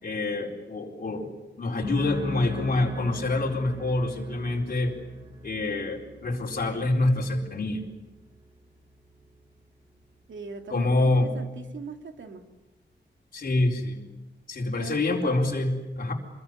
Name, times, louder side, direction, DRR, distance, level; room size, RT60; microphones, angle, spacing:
voice 1, 0.0-5.0 5.4-7.9 10.7-11.3 13.3-14.1 14.5-16.1, left 2 dB, 50° left, -1 dB, 4.4 m, -26 dB
sound 1, 1.8-9.3 9.6-10.1, left 1 dB, 25° right, 7.6 m, -41 dB
voice 2, 10.3-12.4 14.8-15.5, right 5 dB, 80° right, 4 dB, 2.8 m, -41 dB
26.0 x 21.5 x 9.9 m, 1.1 s
wide cardioid pair, 175°, 19 cm